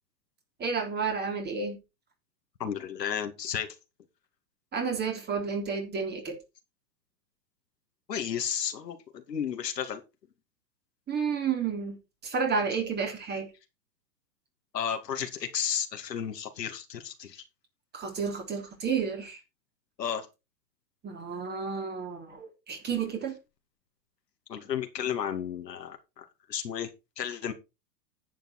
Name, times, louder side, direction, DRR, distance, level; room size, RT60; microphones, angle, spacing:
voice 1, 0.6-1.8 4.7-6.4 11.1-13.5 17.9-19.4 21.0-23.3, right 5 dB, 20° right, 3.5 m, -31 dB
voice 2, 2.6-3.8 8.1-10.0 14.7-17.4 20.0-20.3 24.5-26.9 27.2-27.5, left 8 dB, 75° left, 2.5 m, -33 dB
10.5 x 7.6 x 4.5 m
hypercardioid pair, 115°, 49 cm